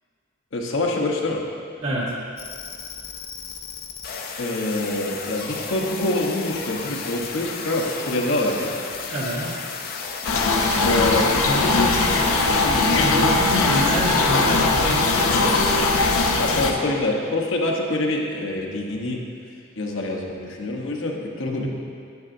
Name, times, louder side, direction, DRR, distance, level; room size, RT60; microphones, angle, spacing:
voice 1, 0.5-1.4 4.4-8.7 10.8-11.9 12.6-13.1 16.4-19.2 19.8-21.7, left 1 dB, 65° left, 0 dB, 1.0 m, -25 dB
voice 2, 1.8-2.1 9.1-9.6 12.8-15.3 21.4-21.7, right 1 dB, 75° right, -8 dB, 1.8 m, -27 dB
sound 1, 2.4-16.3, left 4 dB, 45° left, 0.5 m, -33 dB
sound 2, 10.2-16.7, left 3 dB, 85° left, 0.7 m, -20 dB
sound 3, 10.6-16.0, right 1 dB, 40° right, 1.0 m, -33 dB
9.4 x 8.7 x 2.6 m, 2.3 s
head